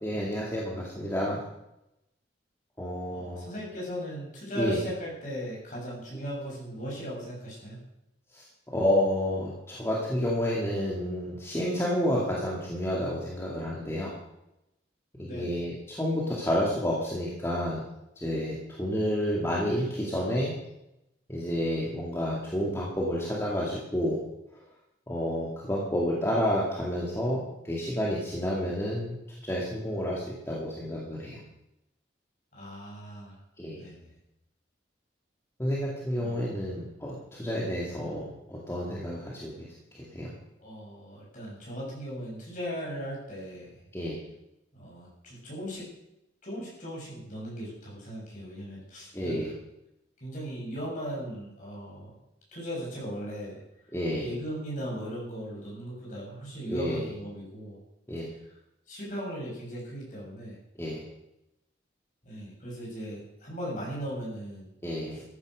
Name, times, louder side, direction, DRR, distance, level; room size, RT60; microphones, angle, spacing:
voice 1, 0.0-1.4 2.8-3.5 4.6-4.8 8.3-8.4 8.7-14.1 15.2-17.8 18.2-20.5 21.3-24.2 24.5-24.6 25.1-29.2 29.4-31.4 33.6-33.8 35.6-40.3 43.9-44.2 49.1-49.5 53.9-54.3 56.7-57.1 58.1-58.3 60.8-61.0 64.8-65.2, equal, 15° left, -5 dB, 2.3 m, -30 dB
voice 2, 3.1-7.8 15.3-15.6 32.5-33.4 33.7-34.1 36.2-36.5 40.6-43.7 44.7-45.9 46.4-49.4 50.2-52.1 52.5-53.6 54.2-57.8 58.9-60.6 62.2-64.7, equal, 45° left, -4 dB, 7.3 m, -38 dB
14.0 x 10.5 x 6.5 m, 0.88 s
head